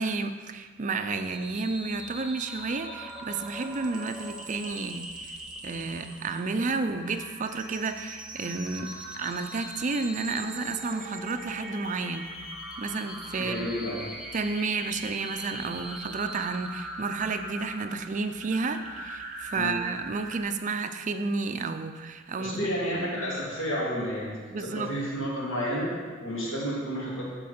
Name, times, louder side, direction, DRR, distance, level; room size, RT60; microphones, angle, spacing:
voice 1, 0.0-5.4 5.6-12.2 12.8-13.6 14.3-22.6 22.9-23.3 24.5-24.9, right 4 dB, 40° right, 8 dB, 0.4 m, -31 dB
sound 1, 1.2-20.4, right 1 dB, 5° right, 1.2 m, -41 dB
voice 2, 13.4-14.1 19.5-19.8 22.4-27.3, equal, 75° left, -6 dB, 3.0 m, -31 dB
13.5 x 4.7 x 4.3 m, 1.5 s
head